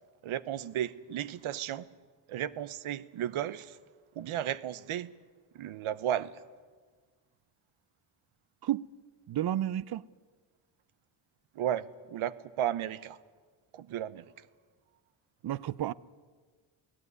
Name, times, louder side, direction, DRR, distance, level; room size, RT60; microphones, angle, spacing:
voice 1, 0.2-1.9 2.3-3.7 4.2-5.1 5.5-6.3 11.6-11.8 12.1-13.2 13.7-14.2, right 11 dB, 80° right, 0.9 m, -34 dB
voice 2, 9.3-10.0 15.4-15.9, right 12 dB, 50° right, 0.6 m, -31 dB
21.5 x 17.0 x 9.6 m
cardioid pair, 100°, 49 cm